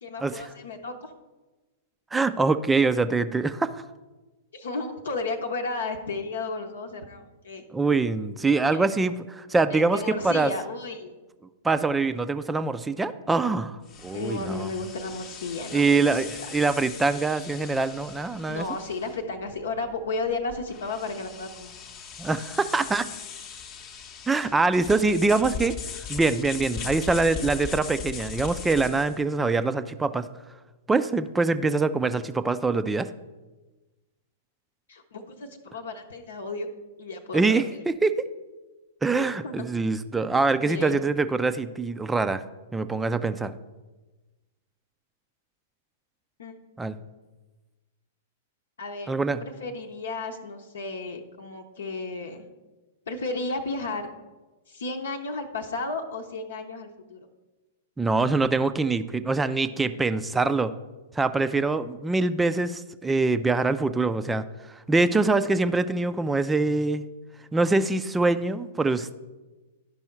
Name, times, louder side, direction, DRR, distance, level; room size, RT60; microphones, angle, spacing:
voice 1, 0.0-1.1 4.5-7.6 8.6-8.8 9.7-11.1 14.1-16.2 18.5-21.7 34.9-36.7 37.0-37.6 39.2-39.7 40.6-41.0 46.4-46.5 48.8-49.1 49.4-52.4 53.1-54.1 54.7-57.2, left 3 dB, 70° left, 3 dB, 0.8 m, -33 dB
voice 2, 2.1-3.7 7.7-10.5 11.6-14.7 15.7-18.7 22.2-23.1 24.3-25.7 26.1-30.3 30.9-33.1 37.3-37.6 38.0-38.3 39.0-42.4 42.7-43.5 46.8-47.0 49.1-49.4 58.0-60.7 61.2-64.4 64.9-67.0 67.5-69.1, right 3 dB, 10° right, 11 dB, 0.4 m, -24 dB
sound 1, 13.8-29.2, left 6 dB, 35° left, 0.8 m, -39 dB
11.5 x 5.4 x 4.5 m, 1.2 s
figure-of-eight pair, 100°, 0 cm